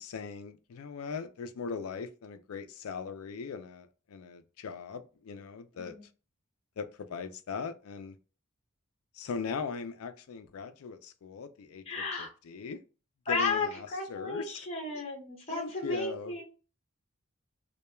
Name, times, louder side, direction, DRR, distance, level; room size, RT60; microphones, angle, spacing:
voice 1, 0.0-6.0 6.8-8.2 9.1-11.8 12.2-12.8 13.3-14.7 15.5-16.3, left 5 dB, 75° left, 0.4 m, -39 dB
voice 2, 11.8-12.3 13.3-16.4, left 3 dB, 30° left, 0.7 m, -34 dB
2.2 x 2.2 x 3.0 m
head